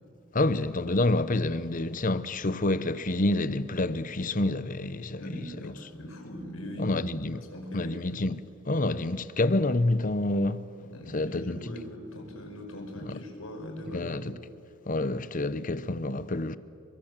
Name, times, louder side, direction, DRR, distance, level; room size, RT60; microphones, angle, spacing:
voice 1, 0.3-5.7 6.8-7.4 7.7-10.7 11.1-11.6 13.0-13.2 13.9-14.3 14.9-16.6, left 2 dB, 40° left, 0.9 m, -28 dB
voice 2, 5.2-7.0 7.3-8.2 10.8-14.3, left 1 dB, 85° left, 5.5 m, -40 dB
30.0 x 23.5 x 7.5 m
head